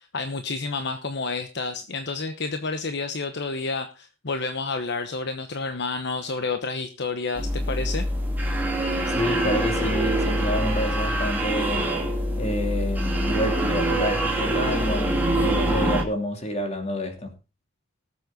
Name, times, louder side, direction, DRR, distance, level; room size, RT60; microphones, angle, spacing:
voice 1, 0.0-8.1, left 3 dB, 60° left, 1.1 m, -30 dB
sound 1, 7.4-16.0, right 1 dB, 10° right, 2.6 m, -25 dB
voice 2, 9.1-11.9 12.4-17.3, equal, 35° left, 2.9 m, -28 dB
19.0 x 7.7 x 3.9 m
head